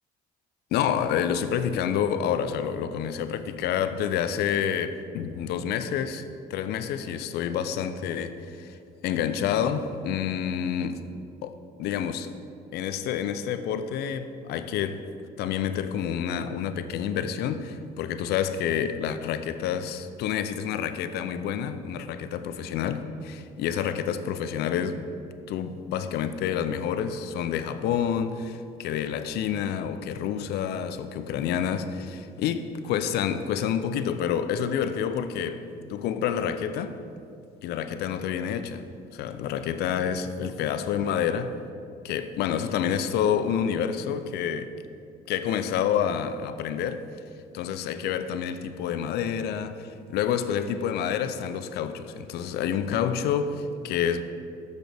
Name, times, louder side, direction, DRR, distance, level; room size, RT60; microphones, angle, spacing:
voice 1, 0.7-6.2 6.5-8.8 9.0-11.0 11.4-12.3 12.7-25.1 25.5-35.6 35.9-37.0 37.6-38.8 39.1-41.6 42.0-44.7 45.3-47.0 47.5-54.2, left 8 dB, 75° left, 11 dB, 0.4 m, -28 dB
6.7 x 6.1 x 3.4 m, 2.5 s
cardioid pair, 110°, 17 cm